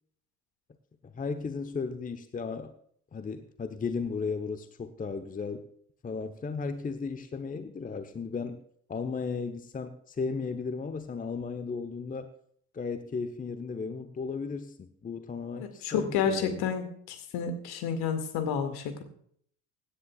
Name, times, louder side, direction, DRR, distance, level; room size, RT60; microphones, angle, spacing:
voice 1, 1.0-2.7 3.1-5.7 6.0-8.6 8.9-12.3 12.7-16.7, left 5 dB, 20° left, 9 dB, 1.0 m, -35 dB
voice 2, 15.6-19.0, left 7 dB, 55° left, 7 dB, 2.2 m, -30 dB
24.5 x 10.0 x 2.4 m, 0.63 s
figure-of-eight pair, 60°, 45 cm